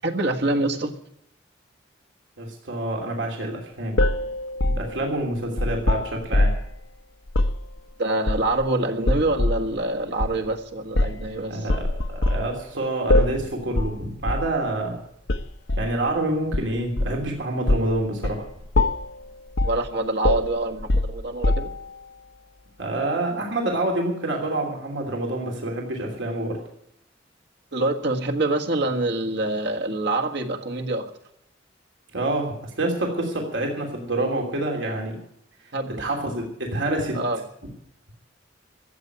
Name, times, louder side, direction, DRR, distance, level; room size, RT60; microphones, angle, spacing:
voice 1, 0.0-0.9 8.0-11.7 19.6-21.7 27.7-31.1 35.7-36.0 37.1-37.4, right 2 dB, 65° right, 3 dB, 1.6 m, -25 dB
voice 2, 2.4-4.0 4.7-6.5 11.5-15.0 15.8-18.4 22.8-26.6 32.1-35.1 36.0-37.2, right 2 dB, 80° right, 1 dB, 3.1 m, -27 dB
sound 1, 4.0-6.7 7.3-7.6 8.3-8.7 9.1-9.7 10.2-10.4 11.0-11.3 11.7-12.5 13.1-13.5 13.8-14.0 14.3-14.5 15.3-15.9 16.5-17.3 17.7-17.9 18.2-18.4 18.7-19.1 19.6-19.8 20.2-21.9, left 1 dB, 75° left, 0.9 m, -23 dB
14.5 x 8.3 x 9.7 m, 0.75 s
head